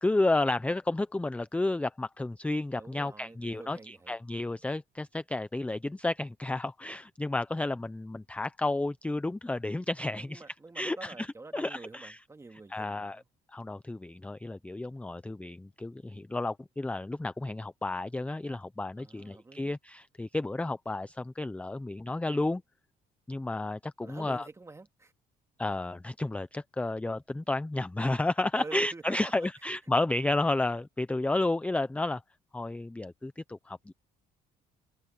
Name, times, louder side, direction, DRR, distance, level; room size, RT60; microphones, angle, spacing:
voice 1, 0.0-10.4 10.8-11.3 11.5-12.2 12.7-13.2 13.5-22.6 23.3-24.4 25.6-32.2 32.5-33.9, left 2 dB, 10° left, 0.6 m, -31 dB
voice 2, 2.8-4.2 10.1-13.3 19.0-19.7 23.5-23.7 24.0-25.1 28.5-29.5, right 3 dB, 15° right, 2.0 m, -47 dB
cardioid pair, 110°, 17 cm